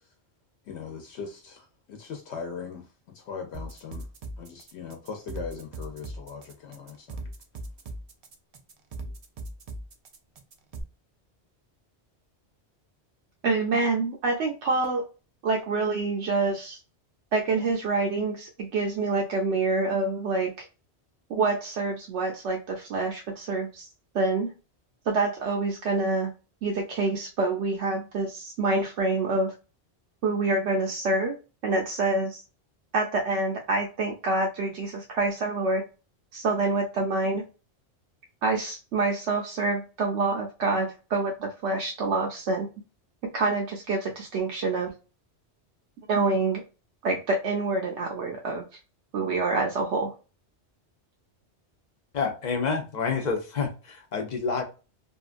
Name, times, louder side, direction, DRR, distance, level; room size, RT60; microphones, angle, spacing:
voice 1, 0.7-4.1 4.4-7.2, left 5 dB, 75° left, 0.9 m, -39 dB
sound 1, 3.5-10.8, right 2 dB, 55° right, 0.4 m, -39 dB
voice 2, 13.4-15.0 15.4-16.8 17.3-20.6 21.3-23.9 24.1-24.5 25.1-26.3 26.6-29.5 30.2-31.4 31.6-32.4 32.9-35.8 36.3-37.4 38.4-42.7 43.3-44.9 46.1-46.6 47.0-48.6 49.1-50.1, right 3 dB, 80° right, 0.9 m, -26 dB
voice 3, 52.1-54.6, left 5 dB, 50° left, 0.6 m, -28 dB
2.8 x 2.3 x 2.4 m
omnidirectional pair, 1.1 m